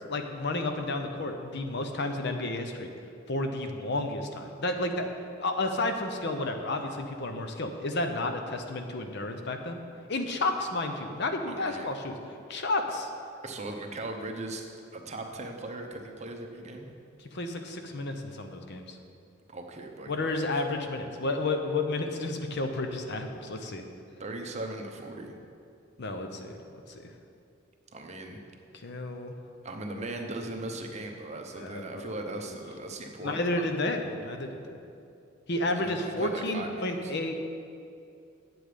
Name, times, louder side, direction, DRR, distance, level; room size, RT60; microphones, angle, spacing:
voice 1, 0.1-2.9 3.3-5.1 5.4-9.8 10.1-12.2 12.5-13.1 17.3-19.0 20.1-23.8 26.0-26.5 26.9-27.1 28.8-29.3 31.6-32.1 33.2-34.8 35.5-37.4, left 2 dB, 60° left, 5 dB, 0.8 m, -31 dB
voice 2, 11.5-11.9 13.4-14.6 14.9-16.9 19.5-20.6 24.2-25.4 27.9-28.4 29.6-33.6 35.8-37.1, right 2 dB, 35° right, 3 dB, 0.8 m, -39 dB
9.4 x 7.8 x 5.0 m, 2.5 s
head